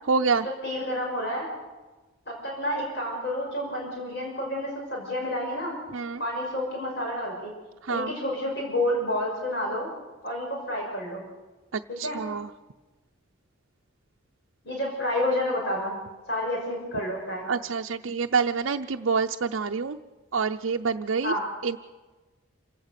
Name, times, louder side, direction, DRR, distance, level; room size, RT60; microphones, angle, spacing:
voice 1, 0.1-0.5 5.9-6.2 7.8-8.1 11.7-12.5 17.5-20.0 20.3-21.3 21.6-21.8, right 5 dB, 80° right, 3 dB, 0.6 m, -27 dB
voice 2, 0.6-1.5 2.3-5.7 6.2-7.5 7.9-9.9 10.2-11.3 11.9-12.2 14.6-16.0 16.3-17.5 21.2-21.5, left 1 dB, 55° left, -1 dB, 5.9 m, -29 dB
27.5 x 17.0 x 6.7 m, 1.2 s
head